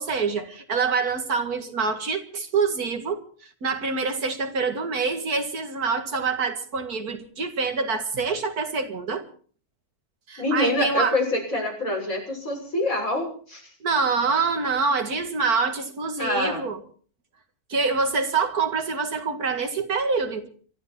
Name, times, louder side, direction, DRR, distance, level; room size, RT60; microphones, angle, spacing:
voice 1, 0.0-9.2 10.3-11.1 13.8-16.8 17.7-20.5, right 4 dB, 85° right, 2.4 m, -26 dB
voice 2, 10.4-13.7 16.2-16.7, left 1 dB, 65° left, 7.4 m, -26 dB
25.5 x 12.5 x 4.4 m
omnidirectional pair, 1.6 m